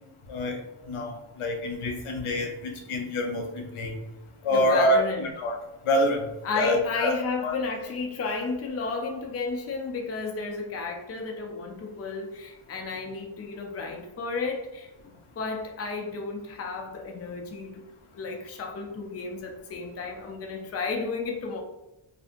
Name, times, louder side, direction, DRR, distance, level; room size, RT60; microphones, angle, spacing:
voice 1, 0.3-0.6 0.9-3.5 3.7-4.0 4.4-5.6 5.9-6.3 6.5-7.1 7.4-7.5, equal, 75° left, 3 dB, 0.7 m, -26 dB
voice 2, 4.5-5.3 6.4-17.8 18.1-21.6, left 4 dB, 30° left, 2 dB, 0.4 m, -32 dB
2.7 x 2.5 x 2.4 m, 0.95 s
wide cardioid pair, 90°, 50 cm